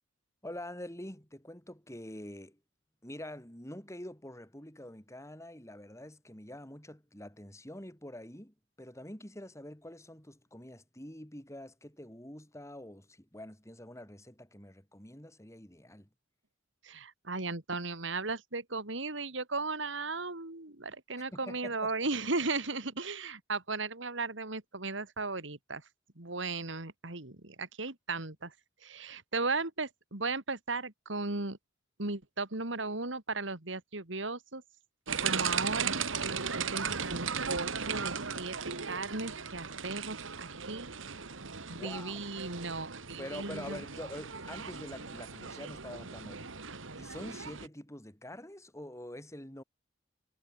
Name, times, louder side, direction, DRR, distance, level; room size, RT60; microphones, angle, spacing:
voice 1, 0.4-2.6 3.0-16.1 21.3-21.9 41.6-42.2 43.2-46.6 47.0-49.6, left 1 dB, 15° left, 6.5 m, -46 dB
voice 2, 16.8-25.8 26.2-28.5 28.8-31.6 32.0-34.6 35.2-36.0 36.3-40.9 41.7-43.8, right 3 dB, 70° right, 2.8 m, -36 dB
sound 1, 35.1-47.7, right 6 dB, 85° right, 2.2 m, -37 dB
head